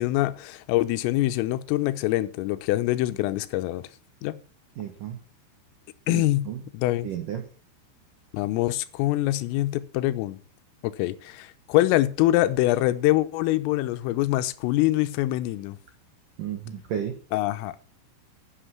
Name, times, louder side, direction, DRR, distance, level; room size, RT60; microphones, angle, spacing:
voice 1, 0.0-3.9 4.2-4.4 6.1-6.5 6.7-7.1 8.3-10.4 10.8-15.8 17.3-17.8, left 16 dB, 85° left, 13 dB, 3.4 m, -24 dB
voice 2, 4.8-5.2 6.1-6.6 7.0-7.5 16.4-17.2, right 9 dB, 85° right, 6 dB, 1.9 m, -33 dB
10.0 x 9.1 x 6.0 m, 0.39 s
omnidirectional pair, 5.8 m